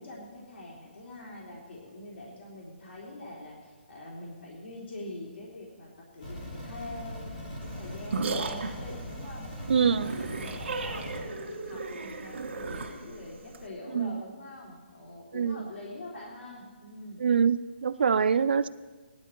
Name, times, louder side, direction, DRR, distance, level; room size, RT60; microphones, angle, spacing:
voice 1, 0.0-5.9 6.1-17.3, left 1 dB, 85° left, -4 dB, 3.2 m, -44 dB
sound 1, 6.2-11.2, equal, 35° left, 3.3 m, -40 dB
sound 2, 7.6-13.7, right 3 dB, 75° right, 2.1 m, -35 dB
voice 2, 9.7-10.1 13.9-14.2 15.3-15.6 17.2-17.6 17.8-18.7, right 6 dB, 55° right, 15 dB, 0.4 m, -24 dB
17.5 x 12.0 x 4.5 m, 1.4 s
hypercardioid pair, 180°, 6 cm